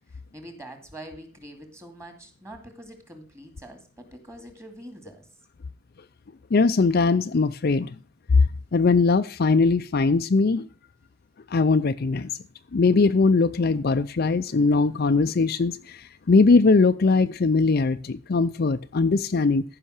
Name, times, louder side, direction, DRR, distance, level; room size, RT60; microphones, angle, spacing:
voice 1, 0.1-5.3, right 1 dB, 15° right, 2.3 m, -44 dB
voice 2, 6.5-7.9 8.3-8.4 8.7-10.7 11.5-12.3 12.7-19.6, left 4 dB, 45° left, 0.5 m, -20 dB
14.5 x 5.7 x 6.5 m
head